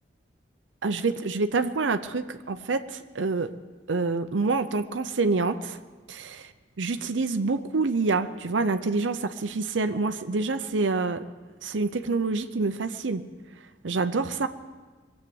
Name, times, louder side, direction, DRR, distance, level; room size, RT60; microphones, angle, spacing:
voice 1, 0.8-3.5 3.9-5.8 6.1-6.5 6.8-11.3 11.6-13.2 13.8-14.5, right 3 dB, 85° right, 9 dB, 0.7 m, -27 dB
22.0 x 8.3 x 7.8 m, 1.3 s
head